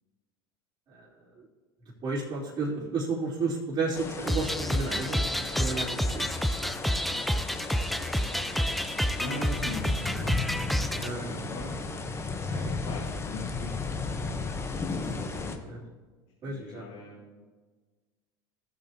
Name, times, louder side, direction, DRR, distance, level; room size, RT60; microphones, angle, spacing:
voice 1, 2.0-5.2 5.5-6.4 11.0-11.3 12.5-12.7 15.7-15.8 16.4-16.8, right 3 dB, 40° right, -10 dB, 3.2 m, -32 dB
sound 1, 3.9-15.6, left 4 dB, 20° left, 1.0 m, -35 dB
sound 2, 4.3-11.1, equal, ahead, 0.4 m, -29 dB
voice 2, 9.2-11.7 12.8-13.8 14.3-15.7 16.4-17.4, left 2 dB, 70° left, -3 dB, 1.9 m, -41 dB
15.5 x 7.7 x 2.9 m, 1.4 s
hypercardioid pair, 90°, 12 cm